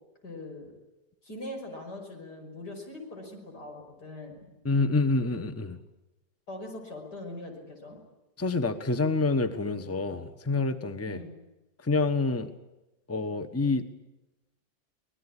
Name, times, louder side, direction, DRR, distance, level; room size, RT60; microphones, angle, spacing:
voice 1, 0.2-0.7 1.2-4.5 6.5-8.0 11.1-11.3, left 1 dB, 85° left, 2 dB, 6.4 m, -41 dB
voice 2, 4.6-5.8 8.4-11.2 11.8-12.5 13.1-13.9, left 3 dB, 10° left, 11 dB, 1.1 m, -27 dB
25.0 x 19.5 x 10.0 m, 0.99 s
omnidirectional pair, 1.7 m